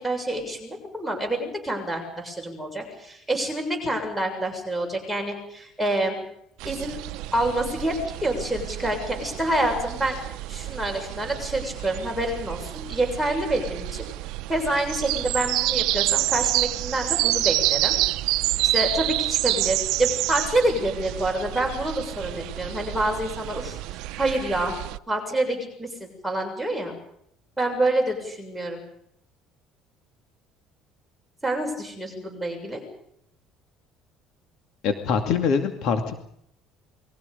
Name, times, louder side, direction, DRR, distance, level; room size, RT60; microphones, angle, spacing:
voice 1, 0.0-6.2 6.6-7.0 7.3-10.2 10.5-14.0 14.5-18.0 18.6-24.7 25.1-26.9 27.6-28.8 31.4-32.8, right 1 dB, ahead, 0 dB, 7.0 m, -27 dB
sound 1, 6.6-25.0, right 18 dB, 70° right, 0.8 m, -28 dB
voice 2, 34.8-36.1, left 6 dB, 50° left, 6 dB, 2.5 m, -24 dB
29.0 x 22.0 x 5.4 m, 0.71 s
cardioid pair, 180°, 0 cm